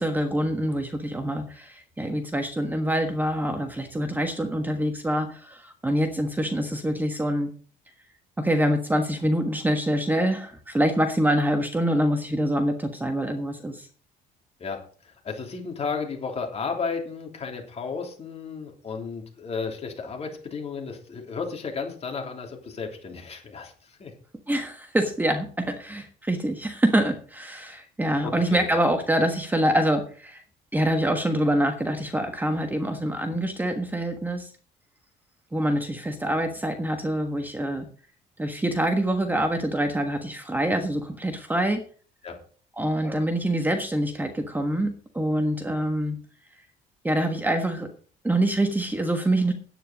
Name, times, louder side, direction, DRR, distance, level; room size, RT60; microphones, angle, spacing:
voice 1, 0.0-7.5 8.4-13.9 24.5-30.4 30.7-34.5 35.5-37.9 38.4-41.8 42.8-46.2 47.0-47.9 48.2-49.5, right 1 dB, 10° right, 6 dB, 1.3 m, -25 dB
voice 2, 14.6-24.1 28.2-28.7 42.2-42.4, left 5 dB, 40° left, 2 dB, 3.3 m, -33 dB
10.0 x 9.3 x 5.1 m, 0.43 s
cardioid pair, 110°, 17 cm